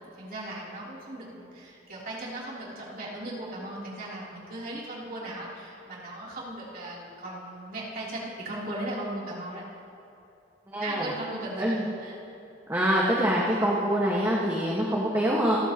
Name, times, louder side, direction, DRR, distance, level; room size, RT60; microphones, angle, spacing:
voice 1, 0.2-9.6 10.8-12.2, right 1 dB, 50° right, -6 dB, 3.6 m, -37 dB
voice 2, 10.7-11.1 11.6-11.8 12.7-15.6, equal, 15° right, -5 dB, 1.7 m, -25 dB
28.5 x 14.0 x 3.1 m, 2.8 s
head